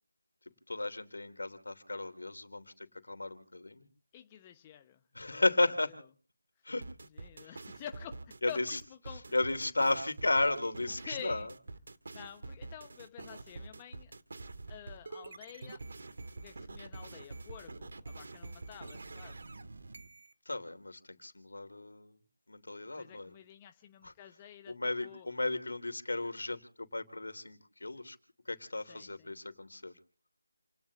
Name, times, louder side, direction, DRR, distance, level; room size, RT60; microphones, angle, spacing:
voice 1, 0.7-3.9 5.1-5.9 6.6-6.8 7.4-7.6 8.4-8.8 9.3-11.5 20.4-22.2 22.5-23.3 24.0-24.1 24.7-28.2 28.4-29.9, left 2 dB, 75° left, 10 dB, 3.2 m, -34 dB
voice 2, 4.1-5.9 6.6-6.7 7.1-9.3 11.0-11.5 12.1-14.1 14.7-15.8 16.3-19.4 22.9-25.3 28.9-29.3, left 10 dB, 15° left, 7 dB, 0.9 m, -49 dB
sound 1, 6.8-20.3, right 3 dB, 55° right, 2.0 m, -46 dB
29.5 x 18.5 x 2.5 m, 0.40 s
figure-of-eight pair, 165°, 0 cm